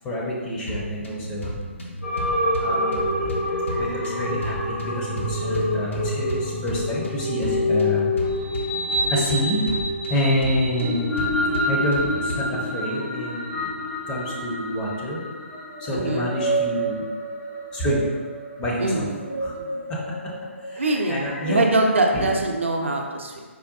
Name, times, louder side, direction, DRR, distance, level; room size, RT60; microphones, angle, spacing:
voice 1, 0.0-1.6 2.6-8.1 9.1-9.7 10.1-11.3 11.7-13.7 14.1-15.2 15.8-17.0 17.7-18.1 18.6-19.0 19.4-19.5 19.9-20.3 20.6-21.6 22.1-22.3, equal, 15° left, -5 dB, 0.5 m, -28 dB
sound 1, 0.7-12.7, equal, 65° left, 0.6 m, -34 dB
sound 2, 2.0-21.6, left 1 dB, 85° left, 1.4 m, -27 dB
voice 2, 15.9-16.3 18.8-19.3 19.5-19.8 20.8-21.2 21.5-23.4, right 2 dB, 65° right, 1 dB, 0.4 m, -23 dB
4.7 x 2.2 x 2.5 m, 1.5 s
figure-of-eight pair, 135°, 7 cm